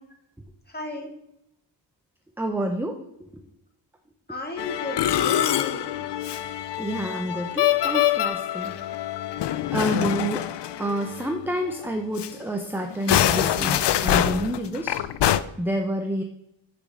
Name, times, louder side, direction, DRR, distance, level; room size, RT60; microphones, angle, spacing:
voice 1, 0.6-1.1 4.3-5.9, left 2 dB, 20° left, 1 dB, 2.0 m, -34 dB
voice 2, 2.4-3.0 3.3-3.4 6.8-8.8 9.7-10.5 10.8-15.0 15.6-16.2, equal, 5° right, 4 dB, 0.6 m, -28 dB
Musical instrument, 4.6-11.4 11.7-11.9 12.2-12.3 12.9-15.4, left 11 dB, 60° left, 0.5 m, -25 dB
6.2 x 6.2 x 6.4 m, 0.80 s
wide cardioid pair, 135°, 48 cm